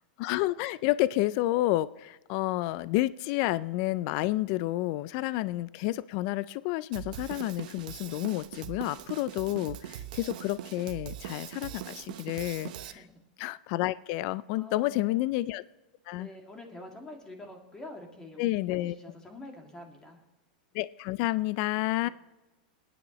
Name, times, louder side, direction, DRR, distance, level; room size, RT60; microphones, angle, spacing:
voice 1, 0.2-13.0 13.4-15.6 16.1-16.3 18.4-19.0 20.7-22.1, left 17 dB, 50° left, 18 dB, 0.3 m, -30 dB
Drum kit, 6.9-12.9, right 11 dB, 65° right, 0.9 m, -41 dB
voice 2, 12.8-13.2 14.6-15.3 16.1-20.2 22.0-22.1, left 1 dB, 15° left, 2 dB, 2.2 m, -47 dB
28.5 x 9.9 x 3.0 m, 1.1 s
supercardioid pair, 140°, 5 cm